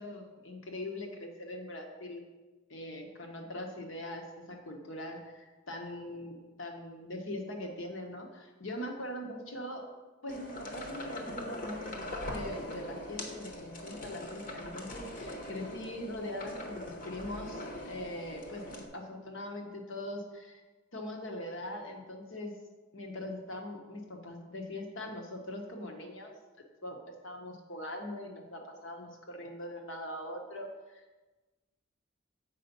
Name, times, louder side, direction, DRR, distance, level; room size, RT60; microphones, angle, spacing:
voice 1, 0.0-2.2 2.7-9.9 10.2-11.9 12.3-18.6 18.9-20.6 20.9-22.5 22.9-26.3 26.8-31.2, left 1 dB, 70° left, 3 dB, 1.3 m, -41 dB
sound 1, 10.3-18.9, left 1 dB, 45° left, 1.0 m, -42 dB
7.5 x 5.0 x 5.3 m, 1.2 s
head